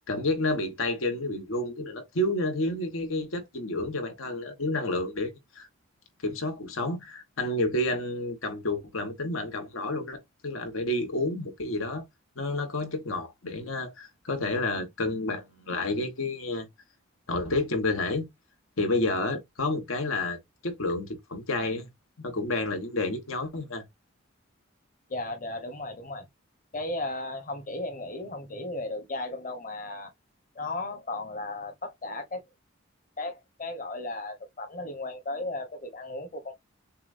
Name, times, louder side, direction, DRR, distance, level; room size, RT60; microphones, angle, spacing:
voice 1, 0.1-5.7 6.2-12.0 12.4-16.7 17.3-18.2 18.8-20.4 20.6-21.9 22.2-23.8, left 2 dB, 85° left, 1.2 m, -30 dB
voice 2, 25.1-26.3 26.7-30.1 30.5-32.4 33.2-36.5, left 2 dB, 40° left, 1.1 m, -35 dB
6.8 x 2.3 x 2.6 m
head